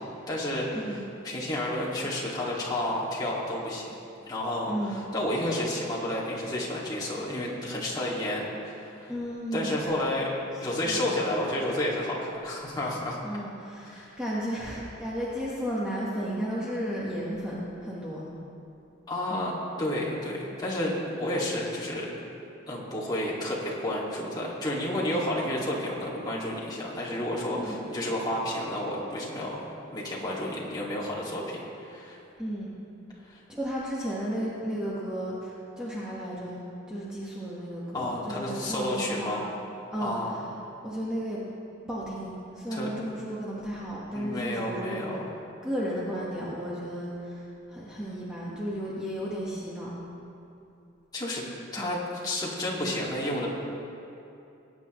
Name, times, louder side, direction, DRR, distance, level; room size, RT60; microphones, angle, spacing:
voice 1, 0.0-3.9 4.3-9.1 9.5-10.3 10.6-13.2 13.8-14.2 19.1-19.5 19.8-22.1 22.7-32.2 33.3-33.4 37.9-39.4 40.0-40.4 42.7-42.9 44.1-45.3 51.1-51.4 51.7-53.5, left 1 dB, 20° left, -6 dB, 2.2 m, -31 dB
voice 2, 9.1-9.9 10.8-11.0 13.2-18.3 19.3-19.5 27.5-27.8 32.4-32.7 33.5-39.4 39.9-40.5 40.8-41.4 41.9-45.2 45.6-47.4 47.7-49.9 51.8-51.9, equal, 5° right, -8 dB, 1.4 m, -34 dB
20.5 x 9.7 x 3.1 m, 2.7 s
head